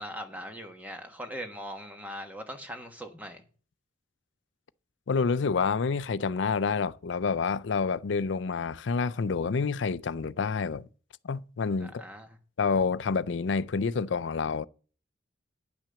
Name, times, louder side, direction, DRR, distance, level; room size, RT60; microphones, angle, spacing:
voice 1, 0.0-3.4 11.8-12.4, equal, 10° right, 1.3 m, -40 dB
voice 2, 5.1-10.9 11.2-12.0 12.6-14.7, left 5 dB, 70° left, 0.5 m, -28 dB
10.0 x 5.9 x 6.9 m
head